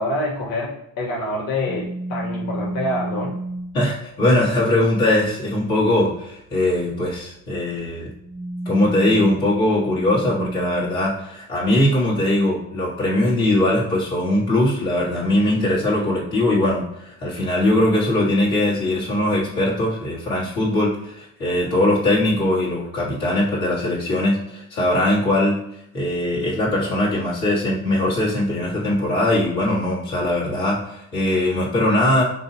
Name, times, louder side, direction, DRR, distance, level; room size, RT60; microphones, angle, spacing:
voice 1, 0.0-3.3, left 1 dB, 60° left, -2 dB, 1.2 m, -26 dB
sound 1, 1.7-3.8 6.8-7.2 8.0-10.9, right 2 dB, 5° right, 0.5 m, -31 dB
voice 2, 3.7-8.1 8.6-25.6 25.9-32.2, left 1 dB, 85° left, -7 dB, 1.3 m, -20 dB
2.7 x 2.7 x 4.1 m, 0.80 s
hypercardioid pair, 55°, 39 cm